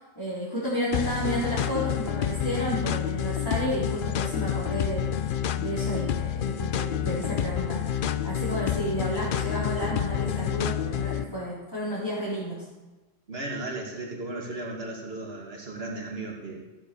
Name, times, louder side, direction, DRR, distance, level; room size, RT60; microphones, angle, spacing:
voice 1, 0.2-12.7, equal, 15° left, -10 dB, 4.2 m, -32 dB
sound 1, 0.9-11.2, left 9 dB, 55° left, 0.6 m, -28 dB
voice 2, 13.3-16.6, right 2 dB, 55° right, 0 dB, 2.5 m, -35 dB
15.5 x 7.9 x 7.0 m, 1.2 s
omnidirectional pair, 1.3 m